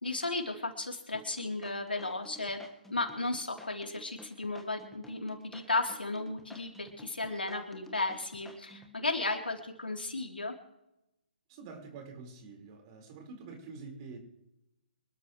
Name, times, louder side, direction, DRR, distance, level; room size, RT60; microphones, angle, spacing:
voice 1, 0.0-2.6 2.9-10.5, left 2 dB, 85° left, 1 dB, 3.7 m, -34 dB
sound 1, 1.1-8.9, left 1 dB, 5° left, 1.7 m, -53 dB
voice 2, 11.5-14.2, right 4 dB, 30° right, 2 dB, 5.1 m, -47 dB
26.0 x 13.0 x 3.3 m, 0.87 s
figure-of-eight pair, 135°, 5 cm